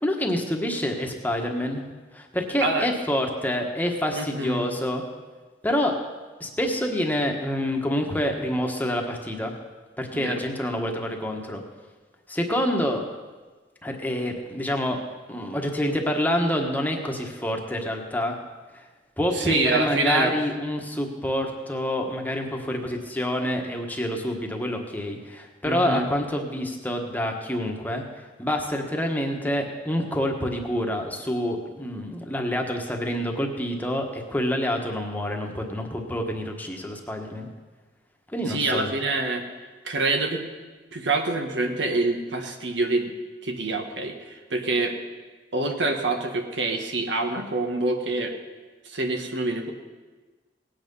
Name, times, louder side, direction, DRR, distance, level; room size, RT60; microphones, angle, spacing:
voice 1, 0.0-1.8 2.1-5.0 5.6-6.0 6.4-9.6 10.0-11.6 12.3-13.0 13.8-15.0 15.3-18.4 18.7-18.8 19.2-28.0 28.4-37.5 38.3-38.9, equal, 10° left, 2 dB, 1.3 m, -27 dB
voice 2, 4.1-4.6 10.1-10.4 19.3-20.3 25.6-26.1 38.5-39.4 39.8-40.4 40.9-43.1 43.4-45.0 45.5-48.3 48.8-49.7, right 2 dB, 80° right, 4 dB, 1.5 m, -26 dB
18.5 x 9.0 x 5.5 m, 1.3 s
head